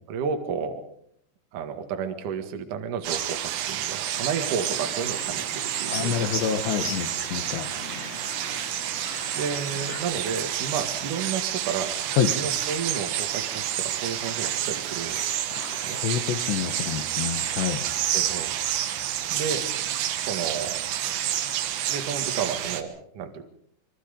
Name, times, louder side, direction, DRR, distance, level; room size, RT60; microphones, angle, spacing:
voice 1, 0.1-0.8 1.5-6.2 9.3-11.9 12.3-15.2 15.7-16.0 18.1-18.5 19.3-19.7 20.3-20.8 21.9-23.4, right 6 dB, 55° right, 5 dB, 2.7 m, -32 dB
sound 1, 3.0-22.8, right 11 dB, 75° right, 3.6 m, -29 dB
sound 2, 4.7-10.0, left 4 dB, 35° left, 3.2 m, -40 dB
voice 2, 5.9-7.7 12.2-12.3 15.5-17.9, left 9 dB, 75° left, 7 dB, 3.2 m, -28 dB
26.0 x 23.0 x 5.2 m, 0.66 s
omnidirectional pair, 5.5 m